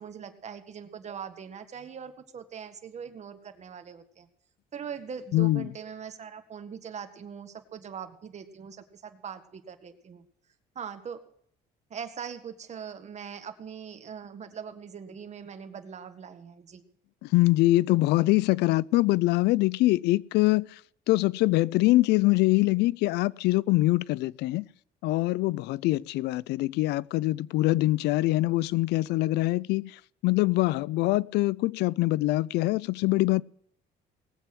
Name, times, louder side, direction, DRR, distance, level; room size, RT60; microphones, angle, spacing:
voice 1, 0.0-4.3 4.7-10.2 10.8-11.2 11.9-16.8, right 7 dB, 40° right, 1.8 m, -41 dB
voice 2, 5.3-5.7 17.3-20.7 21.1-24.6 25.0-30.0 30.2-33.4, left 19 dB, 80° left, 0.4 m, -24 dB
19.0 x 8.3 x 6.2 m
cardioid pair, 110°, 17 cm